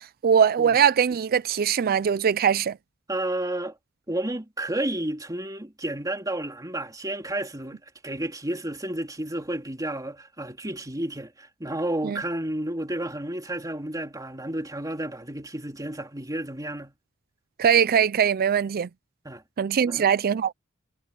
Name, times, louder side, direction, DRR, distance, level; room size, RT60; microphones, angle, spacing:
voice 1, 0.0-2.8 12.0-12.2 17.6-18.9 19.6-20.5, right 7 dB, 45° right, 0.4 m, -21 dB
voice 2, 3.1-3.8 4.1-16.9 19.2-19.4 19.9-20.1, right 1 dB, 15° right, 3.2 m, -31 dB
head